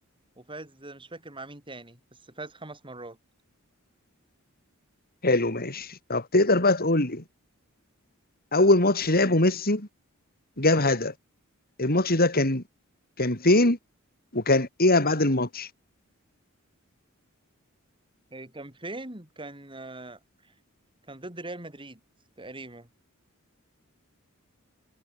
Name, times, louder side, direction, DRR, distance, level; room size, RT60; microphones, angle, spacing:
voice 1, 0.4-3.2 18.3-20.5 21.1-22.0 22.4-22.9, right 2 dB, 25° right, 6.8 m, -41 dB
voice 2, 5.2-7.2 8.5-9.9 10.6-11.1 11.8-12.6 13.2-13.8 14.3-15.7, left 2 dB, 45° left, 5.0 m, -22 dB
head